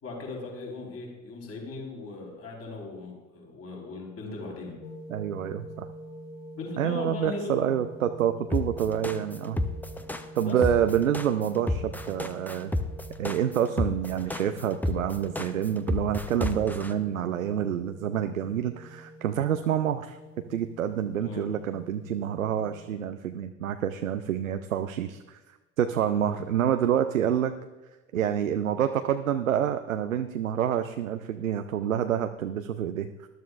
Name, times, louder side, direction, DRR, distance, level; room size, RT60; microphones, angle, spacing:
voice 1, 0.0-4.7 6.5-7.5 10.5-10.6 21.2-21.5 26.2-26.4, left 3 dB, 40° left, -1 dB, 4.2 m, -38 dB
sound 1, 4.8-22.9, equal, 80° left, 1.2 m, -46 dB
voice 2, 5.1-5.9 6.8-9.6 10.3-12.7 13.2-20.2 20.5-25.4 25.8-27.5 28.1-33.3, right 9 dB, 80° right, 8 dB, 0.6 m, -27 dB
sound 2, 8.5-16.9, left 1 dB, 5° left, 0.7 m, -30 dB
20.0 x 12.0 x 2.5 m, 1.1 s
figure-of-eight pair, 65°, 39 cm